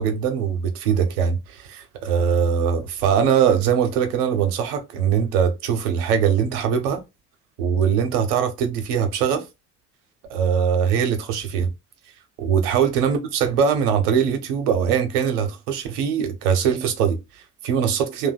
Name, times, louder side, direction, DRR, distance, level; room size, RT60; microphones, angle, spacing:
voice 1, 0.0-7.0 7.6-9.4 10.3-11.7 12.4-18.3, right 7 dB, 75° right, 0.7 m, -21 dB
2.7 x 2.2 x 3.8 m
figure-of-eight pair, 45°, 46 cm